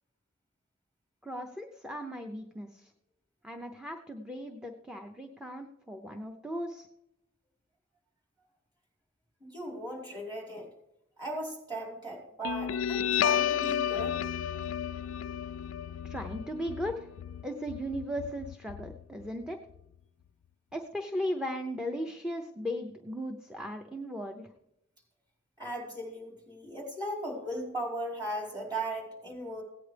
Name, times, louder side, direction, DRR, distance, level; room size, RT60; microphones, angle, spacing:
voice 1, 1.2-2.9 3.4-6.9 16.0-17.1 17.4-19.6 20.7-24.5, equal, 5° right, 3 dB, 0.7 m, -37 dB
voice 2, 9.4-10.7 11.2-14.2 25.6-29.6, right 1 dB, 20° right, -3 dB, 5.0 m, -37 dB
Guitar, 12.4-19.4, left 9 dB, 75° left, 0.3 m, -32 dB
17.0 x 9.3 x 3.4 m, 0.82 s
head